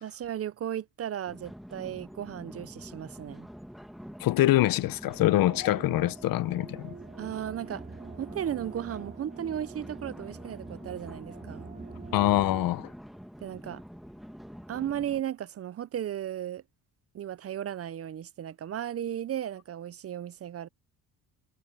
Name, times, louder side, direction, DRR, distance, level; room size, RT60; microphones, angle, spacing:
voice 1, 0.0-3.5 7.2-7.8 8.2-11.7 13.4-13.8 14.7-16.6 17.1-20.7, right 10 dB, 40° right, 0.6 m, -35 dB
sound 1, 1.3-15.2, equal, ahead, 1.4 m, -46 dB
voice 2, 4.2-6.9 12.1-12.9, left 15 dB, 65° left, 0.8 m, -24 dB
sound 2, 5.2-12.7, right 4 dB, 25° right, 2.8 m, -46 dB
cardioid pair, 95°, 37 cm